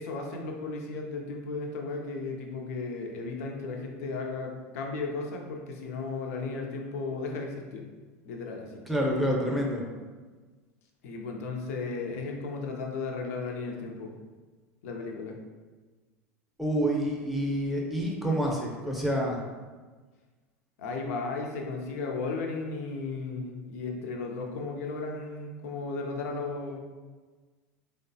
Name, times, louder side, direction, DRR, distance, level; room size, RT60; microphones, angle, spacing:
voice 1, 0.0-7.8 8.2-8.9 11.0-14.1 14.8-15.3 20.8-26.8, left 3 dB, 75° left, 1 dB, 0.5 m, -35 dB
voice 2, 8.9-9.8 16.6-19.4, equal, ahead, -2 dB, 0.6 m, -28 dB
3.5 x 2.0 x 2.6 m, 1.4 s
hypercardioid pair, 95°, 8 cm